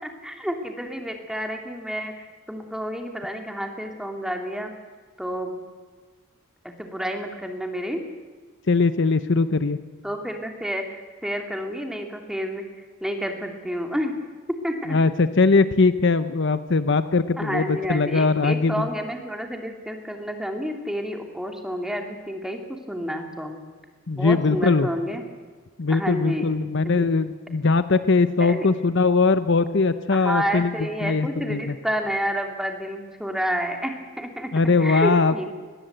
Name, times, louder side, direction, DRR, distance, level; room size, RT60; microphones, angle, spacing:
voice 1, 0.0-4.7 5.2-5.6 6.6-8.0 10.0-12.6 13.0-14.1 14.6-15.0 17.4-23.6 24.2-25.2 25.9-26.5 26.8-27.0 28.4-28.7 30.1-35.5, equal, ahead, 3 dB, 2.6 m, -30 dB
voice 2, 8.7-9.8 14.9-18.9 24.1-24.9 25.8-30.7 31.0-31.8 34.5-35.5, left 4 dB, 55° left, 12 dB, 0.8 m, -20 dB
21.5 x 20.0 x 8.0 m, 1.5 s
head